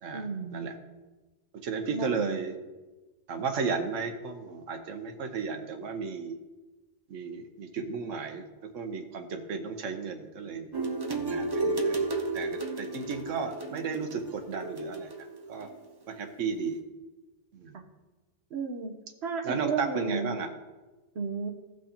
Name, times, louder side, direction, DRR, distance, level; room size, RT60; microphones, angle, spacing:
voice 1, 0.1-0.8 1.9-2.4 17.7-17.8 18.5-18.9 19.2-20.4 21.1-21.5, right 5 dB, 60° right, 4 dB, 1.1 m, -33 dB
voice 2, 1.6-2.5 3.3-6.4 7.1-10.7 11.1-12.1 12.3-15.1 15.5-15.7 16.1-16.8 17.5-17.7 19.4-20.5, right 5 dB, 80° right, 5 dB, 1.2 m, -34 dB
sound 1, 10.7-15.7, right 3 dB, 25° right, 0.6 m, -32 dB
16.5 x 6.1 x 2.9 m, 1.2 s
omnidirectional pair, 1.3 m